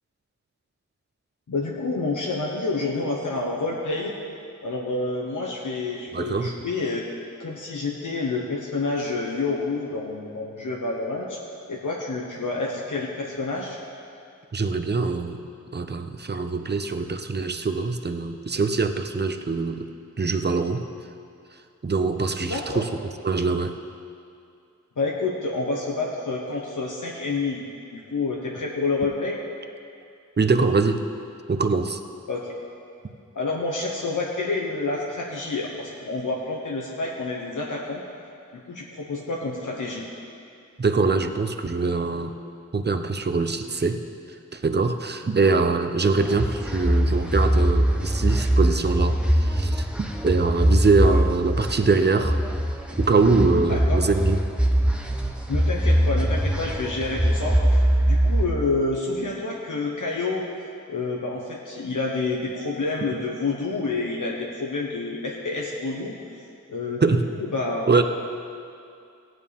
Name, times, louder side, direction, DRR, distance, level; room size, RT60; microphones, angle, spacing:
voice 1, 1.5-4.1 4.6-7.0 7.4-11.4 11.7-13.8 22.5-22.8 25.0-27.6 27.9-29.4 32.3-32.6 33.3-38.0 38.7-40.1 53.7-54.0 55.5-57.6 58.0-60.5 60.9-66.1 66.7-67.0 67.4-67.9, left 3 dB, 80° left, -2 dB, 1.2 m, -28 dB
voice 2, 6.1-6.5 14.5-15.4 15.7-19.9 20.2-20.8 21.8-22.9 23.2-23.7 30.4-31.0 31.5-32.0 40.8-42.3 42.7-44.0 44.5-52.4 53.0-54.4 67.0-67.2 67.9-68.0, right 4 dB, 35° right, 7 dB, 0.7 m, -23 dB
sound 1, 46.2-58.5, right 1 dB, 5° right, 1.0 m, -22 dB
16.5 x 9.4 x 3.6 m, 2.5 s
wide cardioid pair, 70°, 31 cm